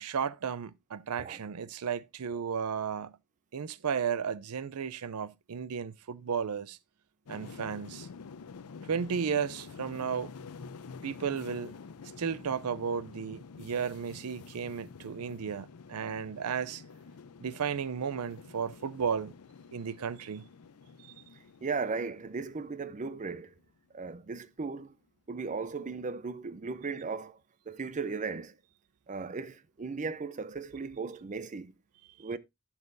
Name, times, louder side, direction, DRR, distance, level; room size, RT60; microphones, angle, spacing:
voice 1, 0.0-3.2 3.5-6.8 7.3-8.1 8.9-10.3 11.0-11.7 12.2-16.8 17.4-19.3 19.7-20.5 21.0-21.1, right 6 dB, 85° right, 0.5 m, -34 dB
sound 1, 7.2-23.7 24.0-24.4, left 5 dB, 85° left, 0.5 m, -49 dB
voice 2, 21.6-23.5 23.9-24.9 25.3-27.4 27.7-28.5 29.1-31.7 32.2-32.4, right 4 dB, 35° right, 0.5 m, -36 dB
12.0 x 7.2 x 2.6 m
head